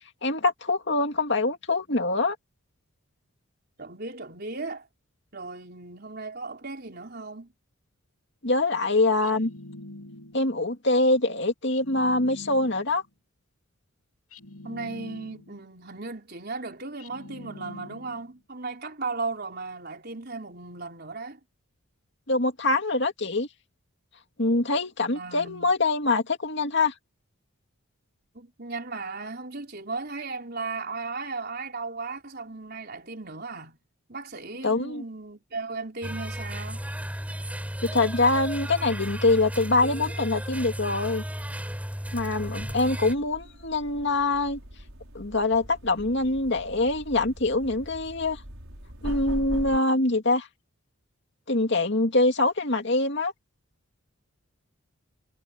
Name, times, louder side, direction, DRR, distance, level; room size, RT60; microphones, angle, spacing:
voice 1, 0.2-2.4 8.4-9.5 10.3-13.0 22.3-23.5 24.4-26.9 34.6-35.0 37.8-41.2 42.1-44.6 45.1-48.4 49.0-50.5 51.5-53.3, left 2 dB, 55° left, 2.4 m, -24 dB
voice 2, 3.8-4.9 5.3-7.5 14.6-21.4 25.1-25.7 28.3-33.8 34.1-36.8, right 3 dB, 45° right, 4.5 m, -36 dB
sound 1, 9.2-10.6 11.7-13.0 14.3-15.7 17.0-18.4, left 1 dB, 85° left, 2.5 m, -45 dB
sound 2, 36.0-43.1, equal, 5° right, 6.5 m, -34 dB
sound 3, 42.0-49.8, equal, 75° right, 5.7 m, -41 dB
head